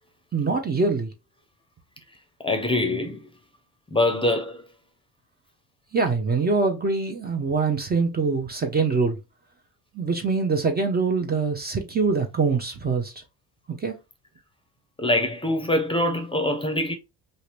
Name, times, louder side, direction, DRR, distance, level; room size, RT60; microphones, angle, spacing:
voice 1, 0.3-1.1 5.9-9.2 9.9-13.1 13.7-14.0, right 4 dB, 25° right, 0.6 m, -24 dB
voice 2, 2.4-3.3 3.9-4.7 15.0-16.9, left 1 dB, 15° left, 0.7 m, -24 dB
2.7 x 2.5 x 3.2 m
supercardioid pair, 90°, 40 cm